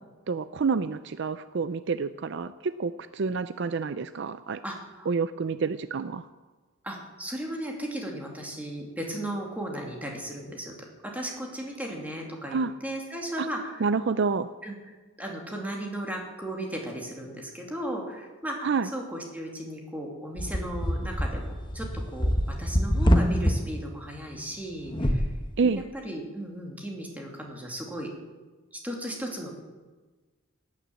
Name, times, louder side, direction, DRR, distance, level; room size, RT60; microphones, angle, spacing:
voice 1, 0.3-4.6 5.1-6.3 12.5-12.7 13.4-13.5 13.8-14.5 18.6-18.9 25.6-25.8, right 5 dB, 55° right, 13 dB, 0.5 m, -28 dB
voice 2, 4.6-5.1 6.8-13.9 14.6-14.7 15.2-25.3 26.0-28.1 28.7-29.5, right 1 dB, 5° right, 0 dB, 2.7 m, -36 dB
sound 1, 20.4-23.5 24.9-25.3, equal, 20° left, 1.2 m, -25 dB
17.5 x 9.9 x 7.7 m, 1.3 s
head